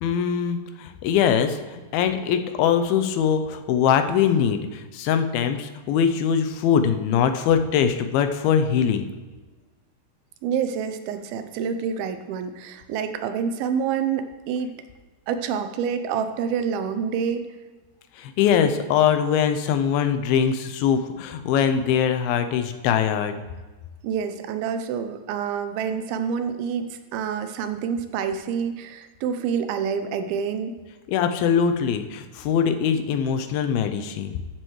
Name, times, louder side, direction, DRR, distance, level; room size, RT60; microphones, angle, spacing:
voice 1, 0.0-9.1 18.2-23.4 31.1-34.4, left 8 dB, 85° left, 8 dB, 2.5 m, -22 dB
voice 2, 10.4-14.7 15.3-17.5 24.0-30.7, right 7 dB, 85° right, 9 dB, 2.6 m, -27 dB
13.5 x 7.8 x 3.1 m, 1.3 s
omnidirectional pair, 4.3 m